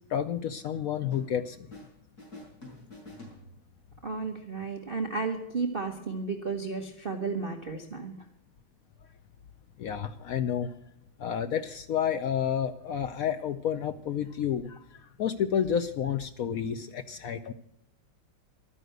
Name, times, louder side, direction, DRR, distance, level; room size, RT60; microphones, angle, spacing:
voice 1, 0.1-1.6 9.8-10.7 11.2-14.8 15.2-17.5, left 8 dB, 85° left, 9 dB, 0.7 m, -30 dB
sound 1, 1.1-1.9 2.2-3.9, left 1 dB, 45° left, 5.5 m, -48 dB
voice 2, 4.0-8.2, right 4 dB, 35° right, 3 dB, 1.0 m, -33 dB
12.5 x 10.0 x 7.9 m, 0.77 s
omnidirectional pair, 2.3 m